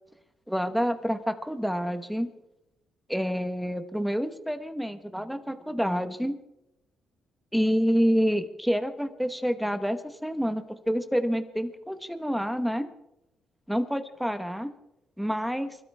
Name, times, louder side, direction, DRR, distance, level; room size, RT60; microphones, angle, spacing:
voice 1, 0.5-2.3 3.1-6.4 7.5-12.9 13.7-14.7 15.2-15.8, equal, ahead, 9 dB, 1.3 m, -28 dB
25.5 x 13.0 x 3.6 m, 0.89 s
cardioid pair, 90°, 0 cm